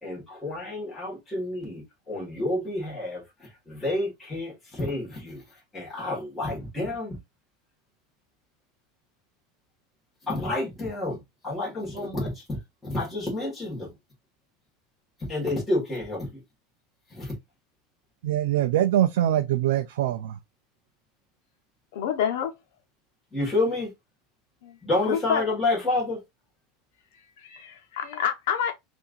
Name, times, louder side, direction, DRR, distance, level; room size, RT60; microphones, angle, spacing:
voice 1, 0.0-7.2 10.2-12.6 12.8-13.9 15.3-16.4 17.1-17.3 23.3-23.9 24.8-26.2, left 2 dB, 5° left, 1.7 m, -29 dB
voice 2, 18.2-20.4, right 12 dB, 85° right, 0.4 m, -23 dB
voice 3, 21.9-22.5 24.6-24.8 25.1-25.4 27.4-28.7, left 9 dB, 70° left, 0.9 m, -27 dB
5.5 x 2.6 x 2.5 m
supercardioid pair, 175°, 0 cm